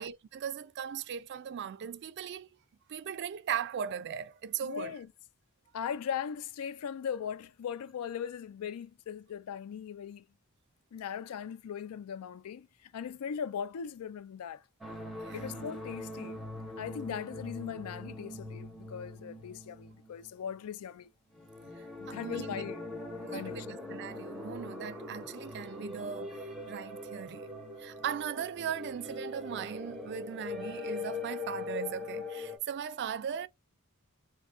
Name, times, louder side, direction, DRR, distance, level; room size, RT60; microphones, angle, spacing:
voice 1, 0.0-2.5 2.9-5.0 15.2-15.6 21.7-22.6 23.3-26.4 26.7-27.5 27.8-33.5, right 8 dB, 50° right, 0.3 m, -38 dB
voice 2, 4.6-5.1 5.7-10.2 10.9-14.6 15.3-16.4 16.8-21.1 22.0-22.8 23.3-23.8, left 7 dB, 75° left, 0.3 m, -39 dB
sound 1, 14.8-20.7 21.3-32.6, left 2 dB, ahead, 0.6 m, -42 dB
3.6 x 2.8 x 2.4 m
head